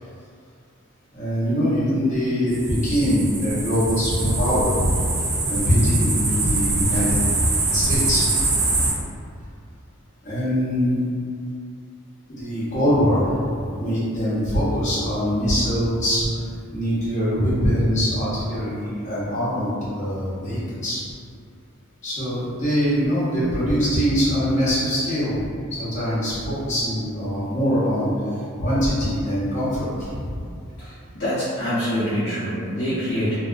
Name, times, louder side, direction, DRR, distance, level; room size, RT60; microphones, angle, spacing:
voice 1, 1.1-4.9 5.5-7.2 7.7-8.3 10.2-11.0 12.3-13.4 13.7-16.3 16.7-21.0 22.0-25.4 25.8-28.1 28.6-30.3 33.1-33.3, equal, 35° left, -11 dB, 0.9 m, -22 dB
sound 1, 2.5-8.9, right 2 dB, 85° right, 0.5 m, -24 dB
voice 2, 30.8-33.3, equal, 50° left, -14 dB, 0.7 m, -25 dB
2.6 x 2.3 x 2.4 m, 2.3 s
head